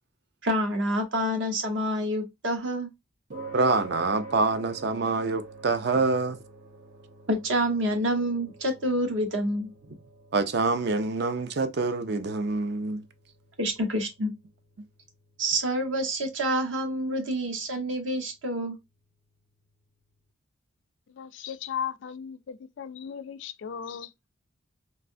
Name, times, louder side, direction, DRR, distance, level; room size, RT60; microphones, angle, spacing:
voice 1, 0.4-2.9 7.3-9.7 13.6-14.3 15.4-18.8, equal, 70° right, 0.9 m, -27 dB
sound 1, 3.3-19.8, right 4 dB, 90° right, 1.5 m, -47 dB
voice 2, 3.5-6.4 10.3-13.0, right 3 dB, 55° right, 0.4 m, -26 dB
voice 3, 21.1-24.1, left 8 dB, 65° left, 0.3 m, -36 dB
3.2 x 2.6 x 2.5 m
head